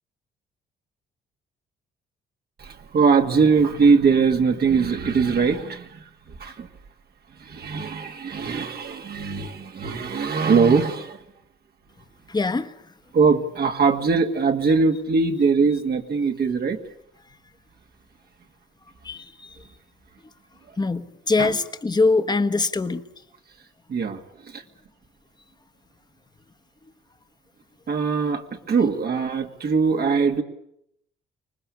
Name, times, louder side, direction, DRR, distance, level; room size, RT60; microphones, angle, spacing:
voice 1, 2.6-6.7 7.4-11.2 13.1-16.8 21.4-21.5 23.9-24.6 27.9-30.4, right 5 dB, 50° right, 4 dB, 2.2 m, -21 dB
voice 2, 12.3-12.7 19.0-19.6 20.8-23.0, left 3 dB, 20° left, 9 dB, 1.4 m, -23 dB
25.0 x 19.5 x 8.6 m, 0.76 s
cardioid pair, 90°, 20 cm